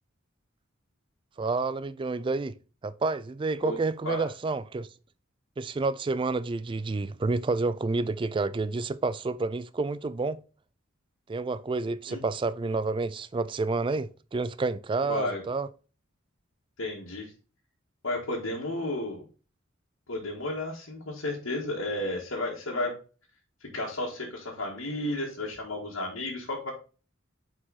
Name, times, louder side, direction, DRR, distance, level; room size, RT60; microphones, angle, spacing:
voice 1, 1.4-2.5 2.8-4.9 5.6-10.4 11.3-15.7, right 3 dB, 25° right, 0.3 m, -29 dB
voice 2, 15.0-15.4 16.8-17.3 18.0-19.3 20.1-23.0 23.6-26.7, left 1 dB, 85° left, 1.7 m, -32 dB
6.1 x 4.8 x 4.0 m
head